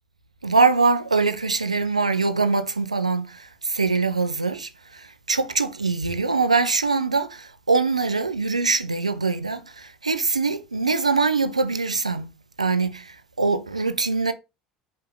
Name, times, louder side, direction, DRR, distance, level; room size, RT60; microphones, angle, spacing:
voice 1, 0.4-12.3 12.6-14.3, right 4 dB, 85° right, 0.6 m, -23 dB
5.5 x 5.2 x 5.8 m
figure-of-eight pair, 65°, 3 cm